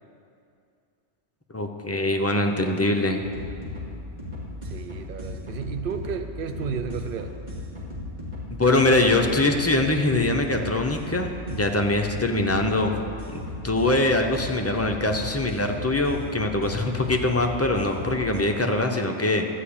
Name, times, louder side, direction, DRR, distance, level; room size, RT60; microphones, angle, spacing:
voice 1, 1.5-3.2 8.5-12.9 13.3-19.5, left 2 dB, 15° left, 3 dB, 0.6 m, -23 dB
sound 1, 3.2-18.4, left 2 dB, 40° right, 2.5 m, -36 dB
voice 2, 4.7-7.4, right 6 dB, 55° right, 7 dB, 0.8 m, -32 dB
12.0 x 5.4 x 8.6 m, 2.5 s
omnidirectional pair, 1.2 m